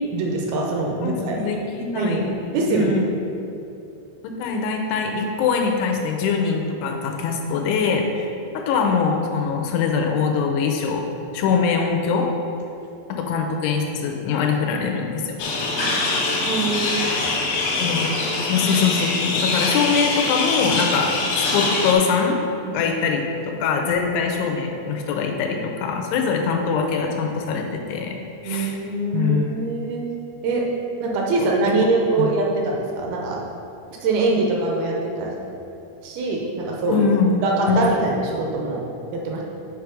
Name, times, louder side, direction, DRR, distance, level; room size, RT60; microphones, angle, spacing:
voice 1, 0.1-1.4 2.0-2.2 2.5-2.9 15.7-17.4 17.8-17.9 22.7-22.8 28.5-30.0 30.4-30.6 31.0-33.4 34.0-35.3 36.0-37.1 37.4-38.8 39.1-39.4, right 3 dB, 80° right, -1 dB, 2.5 m, -23 dB
voice 2, 1.0-3.1 4.4-8.3 8.5-11.0 11.3-12.3 13.1-15.4 17.8-18.2 18.4-22.4 22.7-28.2 28.4-28.8 29.1-29.5 32.2-32.3 36.9-37.9, left 5 dB, 90° left, 2 dB, 2.8 m, -23 dB
sound 1, 15.4-21.9, left 3 dB, 70° left, 2.9 m, -23 dB
7.6 x 4.7 x 5.1 m, 2.8 s
omnidirectional pair, 4.7 m